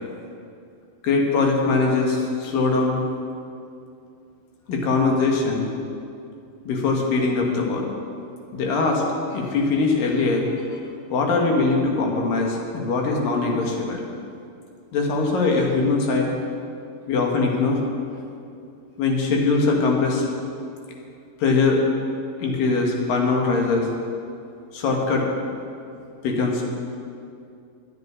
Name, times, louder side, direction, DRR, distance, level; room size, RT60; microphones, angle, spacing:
voice 1, 1.0-3.0 4.7-5.7 6.7-7.9 8.5-9.0 9.3-10.8 11.1-14.0 14.9-16.3 17.1-17.8 19.0-20.3 21.4-21.8 22.4-23.9 24.7-25.3 26.2-26.7, left 3 dB, 65° left, 0 dB, 3.1 m, -21 dB
9.6 x 9.5 x 9.7 m, 2.5 s
omnidirectional pair, 4.6 m